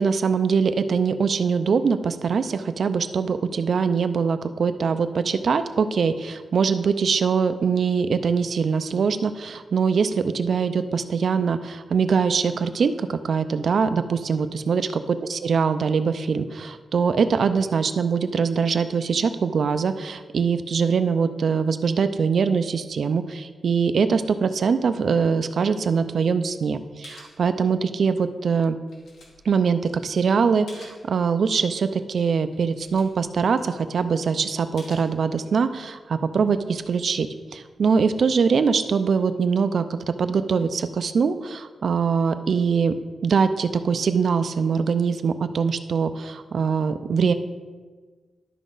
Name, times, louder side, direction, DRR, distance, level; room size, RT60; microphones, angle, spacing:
voice 1, 0.0-14.9 15.3-28.8 29.5-37.3 37.5-42.9 43.2-47.3, right 5 dB, 55° right, 10 dB, 0.4 m, -23 dB
sound 1, 27.0-28.1 28.4-31.1 31.5-31.7 32.1-32.2 32.4-34.2 34.8-35.7 36.2-38.4, left 2 dB, 80° left, 1.8 m, -51 dB
12.0 x 5.0 x 3.8 m, 1.4 s
wide cardioid pair, 165°, 0 cm